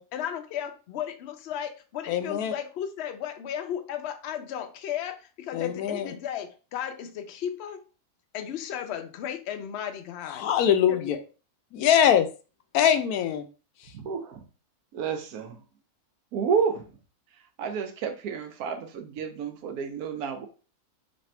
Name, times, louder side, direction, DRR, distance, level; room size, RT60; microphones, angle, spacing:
voice 1, 0.1-7.8 8.3-10.4 10.9-11.2, left 9 dB, 60° left, 6 dB, 0.7 m, -35 dB
voice 2, 2.1-2.5 5.5-6.1 10.3-11.2 11.7-12.3 12.7-13.4, left 9 dB, 80° left, 9 dB, 1.1 m, -22 dB
voice 3, 13.9-14.4 14.9-15.6 16.3-16.8 17.6-20.5, right 6 dB, 75° right, 5 dB, 1.2 m, -30 dB
3.2 x 2.6 x 4.2 m, 0.35 s
omnidirectional pair, 1.6 m